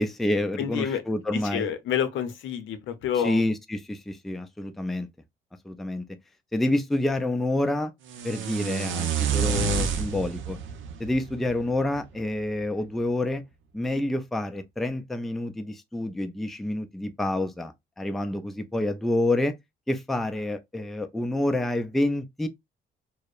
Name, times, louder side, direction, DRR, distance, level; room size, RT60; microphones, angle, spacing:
voice 1, 0.0-1.7 3.2-5.1 5.7-6.0 6.5-7.9 8.2-10.6 11.0-13.4 13.7-19.6 19.9-22.5, left 1 dB, ahead, 0.3 m, -28 dB
voice 2, 0.6-1.0 1.3-3.5, left 9 dB, 80° left, 0.6 m, -28 dB
sound 1, 8.1-12.2, right 6 dB, 75° right, 0.5 m, -29 dB
2.6 x 2.0 x 2.4 m
cardioid pair, 90°, 20 cm